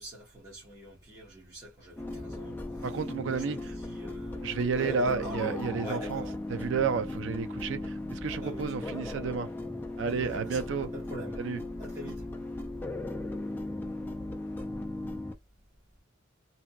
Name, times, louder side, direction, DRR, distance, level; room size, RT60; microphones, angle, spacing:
voice 1, 0.0-2.6 3.3-6.3 8.3-8.8 10.2-11.4 11.8-12.2, equal, 15° right, 0.9 m, -44 dB
sound 1, 2.0-15.3, left 2 dB, 10° left, 0.3 m, -37 dB
voice 2, 2.8-3.8 4.4-6.2 6.5-9.5 10.0-10.9 11.4-11.6, right 5 dB, 60° right, 0.4 m, -31 dB
2.7 x 2.1 x 2.3 m
head